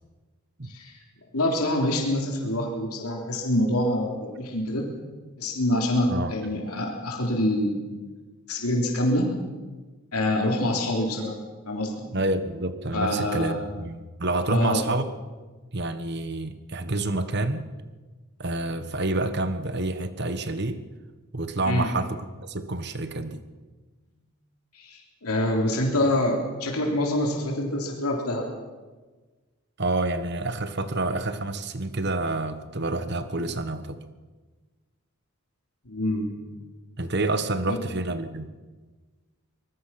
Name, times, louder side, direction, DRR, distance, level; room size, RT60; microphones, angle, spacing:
voice 1, 0.6-1.0 1.3-4.9 5.4-7.9 8.5-9.3 10.1-11.4 11.7-12.1 12.9-13.6 14.5-14.8 21.7-21.9 24.7-28.5 35.8-36.3 37.7-37.8, left 1 dB, 85° left, 1 dB, 3.4 m, -26 dB
voice 2, 12.1-15.1 15.7-17.6 18.4-20.8 21.3-23.4 29.8-34.0 37.0-38.5, right 2 dB, 50° right, 11 dB, 1.3 m, -28 dB
24.0 x 20.5 x 5.9 m, 1.3 s
head